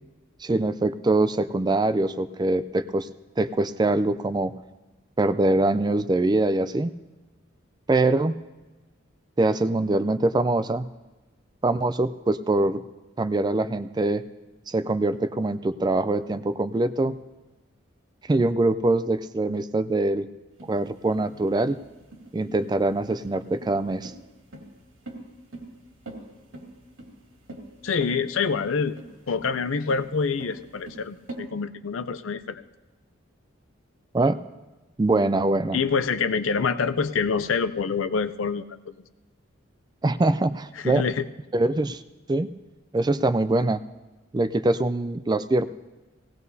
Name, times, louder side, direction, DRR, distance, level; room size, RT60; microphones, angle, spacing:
voice 1, 0.4-3.1 3.4-4.5 5.2-6.9 7.9-8.4 9.4-10.9 11.6-12.8 13.2-14.3 14.7-17.2 18.3-20.3 20.6-21.8 22.3-24.1 34.1-34.4 35.0-35.8 40.0-41.1 41.5-42.0 42.3-42.5 42.9-43.8 44.3-45.7, right 2 dB, 20° right, 13 dB, 0.4 m, -23 dB
sound 1, 20.6-31.4, right 2 dB, 75° right, 2.5 m, -43 dB
voice 2, 27.8-29.0 29.3-32.7 35.7-38.9 40.8-41.3, left 5 dB, 75° left, 12 dB, 0.5 m, -26 dB
18.0 x 17.0 x 2.7 m, 1.2 s
head